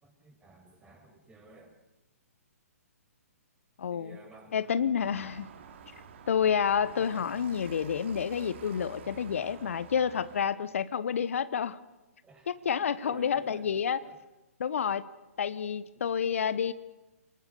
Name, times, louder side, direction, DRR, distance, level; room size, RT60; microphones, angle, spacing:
voice 1, 0.0-1.8 3.9-4.9 12.2-13.7 14.0-14.2, right 2 dB, 10° right, 4 dB, 5.8 m, -54 dB
voice 2, 3.8-4.2 4.5-5.5 6.3-11.8 12.5-14.0 14.6-15.0 15.4-16.7, left 7 dB, 60° left, 15 dB, 1.1 m, -29 dB
sound 1, 5.0-10.4, right 7 dB, 50° right, 2.9 m, -49 dB
27.5 x 20.0 x 7.0 m, 1.1 s
figure-of-eight pair, 130°, 8 cm